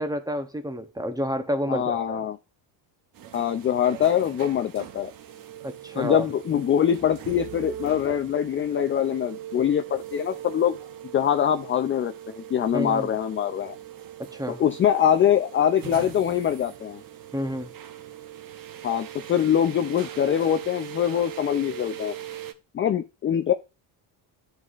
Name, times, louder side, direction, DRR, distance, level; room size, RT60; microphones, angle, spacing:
voice 1, 0.0-2.2 5.6-6.3 12.7-13.1 14.3-14.6 17.3-17.7, equal, 10° right, 0.8 m, -29 dB
voice 2, 1.7-2.4 3.3-5.1 6.0-10.8 11.1-13.7 14.5-17.0 18.8-22.2 22.7-23.5, left 9 dB, 30° left, 0.3 m, -23 dB
sound 1, 3.1-22.5, right 11 dB, 45° right, 0.8 m, -41 dB
11.0 x 4.0 x 2.4 m
cardioid pair, 90°, 46 cm